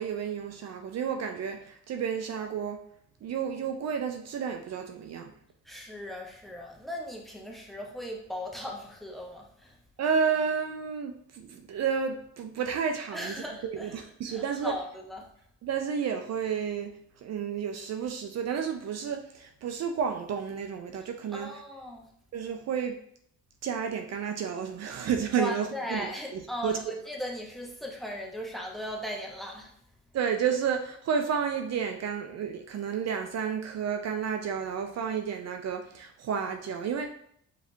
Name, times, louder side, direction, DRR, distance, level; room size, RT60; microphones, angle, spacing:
voice 1, 0.0-2.8 3.2-5.3 10.0-14.8 15.6-21.5 22.3-22.9 23.6-26.8 30.1-37.1, right 7 dB, 60° right, 5 dB, 0.5 m, -31 dB
voice 2, 5.6-9.8 13.1-13.9 14.3-15.3 21.3-22.1 25.4-29.7, left 1 dB, ahead, 0 dB, 1.0 m, -38 dB
5.0 x 3.2 x 2.6 m, 0.67 s
cardioid pair, 90°, 30 cm